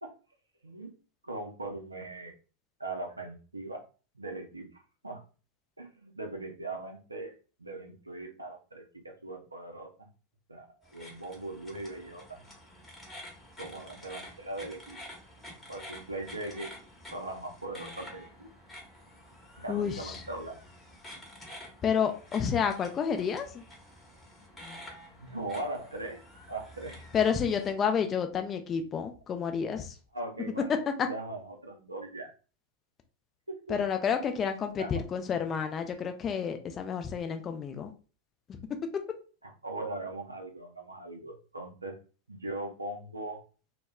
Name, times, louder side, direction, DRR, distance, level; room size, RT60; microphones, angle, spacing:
voice 1, 1.2-2.3 2.8-3.8 4.1-5.2 5.8-7.3 7.6-10.1 10.5-12.4 13.6-15.0 15.7-16.7 17.1-18.5 19.6-20.6 25.1-26.2 26.5-27.0 30.1-32.3 33.5-33.8 34.8-35.0 39.4-42.0 42.3-43.4, right 2 dB, 85° right, 3 dB, 0.5 m, -40 dB
sound 1, 10.8-27.7, left 1 dB, 10° left, 0.9 m, -49 dB
voice 2, 19.7-20.2 21.8-23.6 27.1-29.9 33.7-37.9, left 7 dB, 25° left, 6 dB, 0.4 m, -30 dB
2.1 x 2.1 x 3.4 m, 0.36 s
figure-of-eight pair, 85°, 0 cm